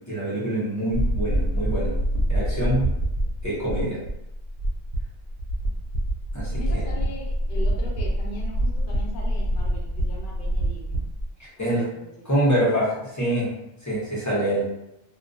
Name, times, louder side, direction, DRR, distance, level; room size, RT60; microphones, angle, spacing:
voice 1, 0.1-1.9 2.3-2.9 3.4-4.0 6.3-6.5 11.4-11.8 12.3-13.5 13.8-14.6, right 1 dB, 20° left, -8 dB, 0.7 m, -25 dB
sound 1, 0.9-11.3, right 1 dB, 70° right, 0.8 m, -26 dB
voice 2, 6.5-10.9 11.6-12.5, left 1 dB, 55° left, -2 dB, 0.7 m, -39 dB
2.2 x 2.2 x 2.5 m, 0.87 s
omnidirectional pair, 1.2 m